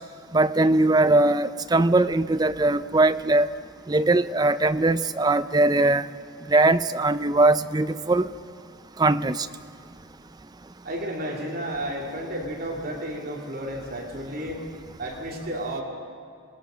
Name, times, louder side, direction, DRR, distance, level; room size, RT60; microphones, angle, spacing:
voice 1, 0.3-3.5 3.9-6.1 6.5-8.3 9.0-9.5, right 2 dB, 20° right, 12 dB, 0.5 m, -20 dB
voice 2, 10.8-14.6 15.0-15.8, right 1 dB, 45° right, -1 dB, 2.8 m, -32 dB
27.0 x 19.5 x 6.3 m, 2.5 s
head